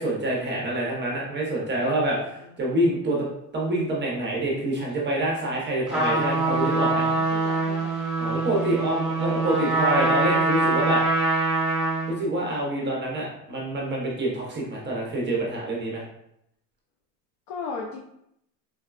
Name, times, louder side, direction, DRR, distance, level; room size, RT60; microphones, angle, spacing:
voice 1, 0.0-3.3 3.5-7.1 8.2-11.0 12.1-16.0, right 1 dB, 20° right, -3 dB, 0.7 m, -26 dB
voice 2, 2.0-2.5 7.1-8.1 17.5-18.0, left 4 dB, 50° left, 0 dB, 0.5 m, -37 dB
Trumpet, 5.9-12.2, right 2 dB, ahead, 1.1 m, -24 dB
3.9 x 2.2 x 2.3 m, 0.78 s
supercardioid pair, 120°, 49 cm